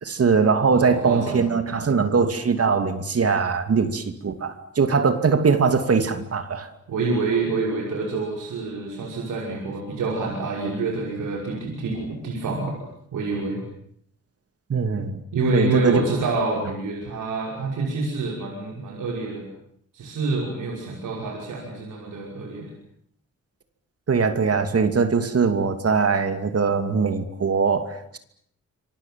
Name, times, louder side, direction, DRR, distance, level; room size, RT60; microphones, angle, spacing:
voice 1, 0.0-6.7 14.7-15.2 15.5-16.0 24.1-28.2, right 5 dB, 50° right, 8 dB, 2.7 m, -21 dB
voice 2, 0.7-1.5 6.9-12.8 13.1-13.6 15.3-19.5 19.9-22.7, right 3 dB, 90° right, -1 dB, 5.7 m, -27 dB
27.0 x 23.5 x 7.6 m, 0.69 s
cardioid pair, 80°, 30 cm